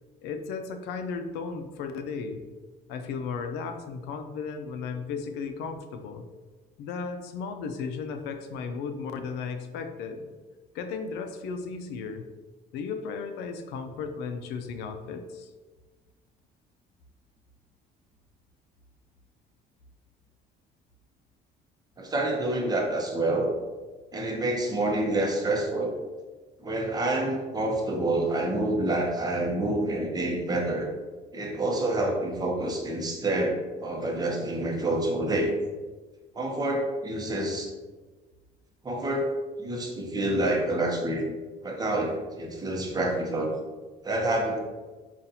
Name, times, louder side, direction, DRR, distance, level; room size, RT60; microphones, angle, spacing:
voice 1, 0.2-2.4 2.9-6.3 6.8-10.3 10.7-12.3 12.7-15.5, left 5 dB, 90° left, 7 dB, 0.4 m, -35 dB
voice 2, 22.0-23.5 24.1-25.9 26.6-30.9 31.3-35.5 36.4-37.7 38.8-39.3 39.6-41.4 41.6-43.5 44.0-44.6, right 1 dB, 25° right, 0 dB, 0.8 m, -27 dB
5.3 x 2.4 x 2.7 m, 1.3 s
cardioid pair, 110°, 17 cm